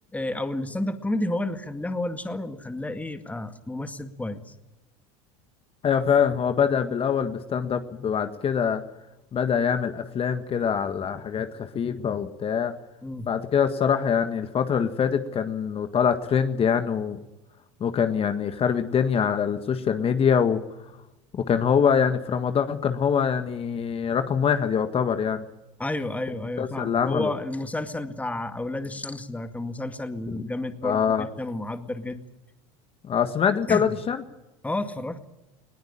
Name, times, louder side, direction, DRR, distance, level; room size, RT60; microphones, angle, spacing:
voice 1, 0.1-4.5 13.0-13.3 25.8-32.2 33.7-34.0 34.6-35.3, left 1 dB, 10° left, 9 dB, 2.0 m, -31 dB
voice 2, 5.8-8.8 9.3-12.7 13.3-17.2 17.8-20.6 21.4-25.5 26.6-27.3 30.8-31.2 33.0-34.2, left 7 dB, 35° left, 9 dB, 1.7 m, -24 dB
20.5 x 19.0 x 8.8 m, 0.96 s
hypercardioid pair, 90°, 17 cm